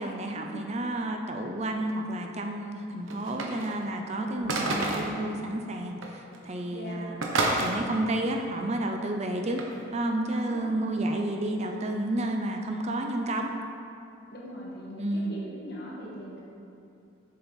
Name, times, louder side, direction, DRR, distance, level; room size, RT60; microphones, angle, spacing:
voice 1, 0.0-7.2 7.6-9.7 9.9-13.5 15.0-15.3, right 1 dB, 35° right, 3 dB, 0.5 m, -31 dB
sound 1, 3.1-3.8 4.5-5.2 6.0-6.1 6.3-6.6 7.2-7.7 9.6-9.7, right 2 dB, 85° right, 1.0 m, -29 dB
voice 2, 4.1-4.6 6.7-7.1 10.4-10.9 14.3-16.4, equal, 55° left, -4 dB, 1.6 m, -40 dB
7.4 x 7.0 x 4.0 m, 2.6 s
head